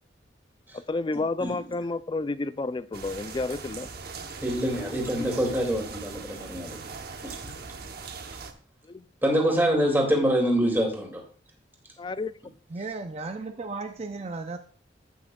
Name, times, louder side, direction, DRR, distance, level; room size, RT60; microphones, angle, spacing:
voice 1, 0.7-3.9 4.7-5.3 8.9-9.0 12.0-12.3, left 3 dB, 25° left, 14 dB, 0.3 m, -31 dB
sound 1, 2.9-8.5, right 4 dB, 55° right, 0.9 m, -40 dB
voice 2, 4.4-6.8 9.2-11.2, equal, 10° right, 1 dB, 2.3 m, -25 dB
voice 3, 12.7-14.6, right 3 dB, 35° right, 6 dB, 0.5 m, -35 dB
17.0 x 6.0 x 2.3 m, 0.44 s
head